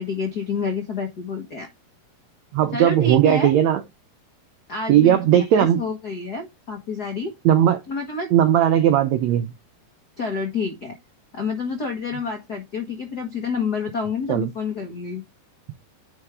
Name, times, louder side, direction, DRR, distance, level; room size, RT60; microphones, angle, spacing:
voice 1, 0.0-1.7 2.7-3.5 4.7-7.3 7.9-8.3 10.2-11.0 11.3-15.2, left 4 dB, 75° left, 0.9 m, -28 dB
voice 2, 2.5-3.8 4.9-5.8 7.4-7.8 8.3-9.5 14.3-14.5, right 10 dB, 85° right, 1.6 m, -17 dB
9.8 x 4.6 x 3.5 m
omnidirectional pair, 4.0 m